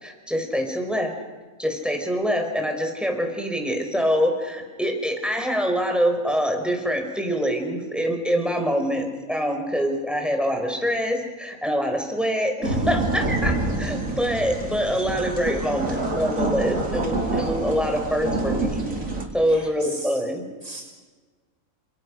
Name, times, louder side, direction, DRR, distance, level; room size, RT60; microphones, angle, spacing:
voice 1, 0.0-1.2 1.6-18.8 19.3-20.4, equal, ahead, 3 dB, 5.3 m, -25 dB
sound 1, 12.6-19.3, right 2 dB, 70° right, 4.4 m, -27 dB
voice 2, 19.5-20.2 20.6-20.8, right 2 dB, 25° left, 0 dB, 2.7 m, -37 dB
29.5 x 27.0 x 6.6 m, 1.3 s
omnidirectional pair, 1.4 m